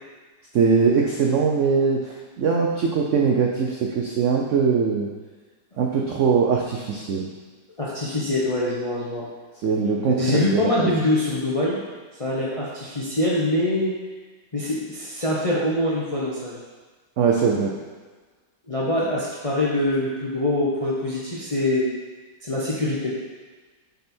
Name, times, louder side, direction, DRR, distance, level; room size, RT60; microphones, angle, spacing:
voice 1, 0.5-5.1 5.8-7.3 9.6-10.9 17.2-17.7, right 5 dB, 80° right, 0 dB, 0.6 m, -21 dB
voice 2, 7.8-9.3 10.2-11.8 12.2-14.0 14.5-16.6 18.7-21.9 22.4-23.2, left 1 dB, 35° left, -5 dB, 0.5 m, -24 dB
6.8 x 4.1 x 4.3 m, 1.4 s
omnidirectional pair, 2.0 m